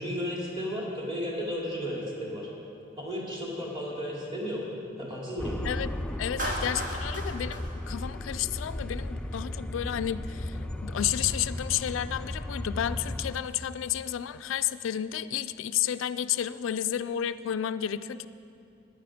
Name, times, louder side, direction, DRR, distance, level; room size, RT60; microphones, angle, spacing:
voice 1, 0.0-2.5 3.0-4.7 5.0-5.6, equal, 25° right, -4 dB, 3.0 m, -33 dB
sound 1, 5.4-13.4, left 1 dB, 5° left, 0.4 m, -35 dB
voice 2, 6.2-18.3, left 10 dB, 85° left, 13 dB, 0.4 m, -31 dB
Clapping, 6.4-8.7, right 1 dB, 45° right, 2.1 m, -36 dB
15.0 x 10.5 x 5.0 m, 2.6 s
head